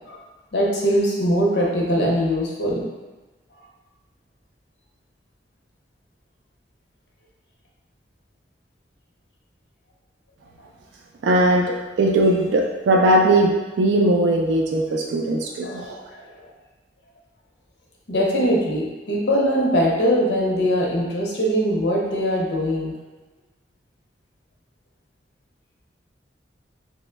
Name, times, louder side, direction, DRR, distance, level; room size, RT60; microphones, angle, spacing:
voice 1, 0.5-2.9 15.6-16.0 16.3-16.4 18.1-22.9, equal, 70° left, -3 dB, 0.7 m, -21 dB
voice 2, 11.2-15.9, right 1 dB, 85° right, 1 dB, 0.3 m, -19 dB
3.0 x 2.1 x 3.3 m, 1.2 s
head